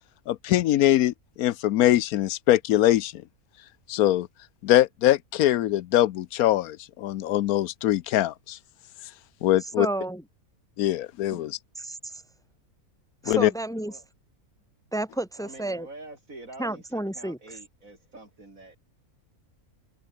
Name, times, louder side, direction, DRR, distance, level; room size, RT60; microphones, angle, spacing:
voice 1, 0.3-3.2 3.9-4.3 4.6-8.6 9.4-9.9 10.8-11.6 13.3-13.5, left 13 dB, 80° left, 1.1 m, -22 dB
voice 2, 9.8-10.2 11.3-11.4 11.8-12.2 13.2-13.9 14.9-15.9 16.6-17.6, right 1 dB, 5° left, 0.3 m, -31 dB
voice 3, 15.3-18.8, right 2 dB, 65° right, 6.5 m, -46 dB
omnidirectional pair, 1.6 m